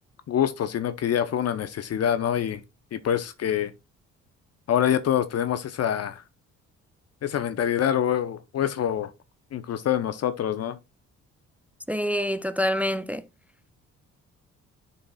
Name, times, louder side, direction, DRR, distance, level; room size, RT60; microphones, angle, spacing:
voice 1, 0.3-2.6 2.9-3.7 4.7-6.2 7.2-9.1 9.5-10.8, left 9 dB, 55° left, 0.7 m, -25 dB
voice 2, 11.9-13.2, equal, 5° right, 0.4 m, -26 dB
11.0 x 4.2 x 2.2 m
cardioid pair, 90°, 30 cm